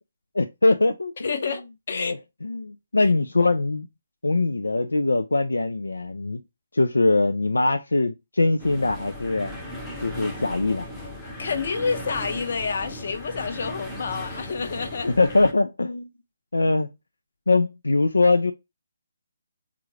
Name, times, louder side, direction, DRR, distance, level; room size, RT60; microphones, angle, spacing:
voice 1, 0.3-1.5 2.0-3.9 4.2-6.4 6.7-9.5 10.0-10.9 15.0-16.1 16.5-16.9 17.5-18.5, left 2 dB, 80° left, 0.3 m, -22 dB
voice 2, 1.2-2.2 3.0-3.1 11.4-15.1, left 5 dB, 55° left, 0.7 m, -29 dB
sound 1, 8.6-15.5, left 1 dB, 5° left, 0.7 m, -37 dB
3.5 x 2.4 x 3.1 m
figure-of-eight pair, 145°, 0 cm